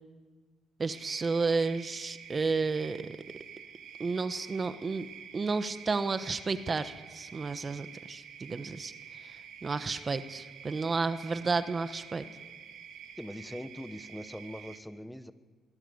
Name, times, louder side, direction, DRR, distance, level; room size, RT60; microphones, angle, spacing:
voice 1, 0.8-3.2 4.0-5.1 5.3-12.2, right 4 dB, 35° right, 11 dB, 1.2 m, -32 dB
sound 1, 0.9-14.8, right 8 dB, 80° right, 2.4 m, -49 dB
voice 2, 13.2-15.3, equal, 5° left, 11 dB, 1.2 m, -42 dB
23.0 x 16.0 x 8.1 m, 1.5 s
cardioid pair, 90°, 0 cm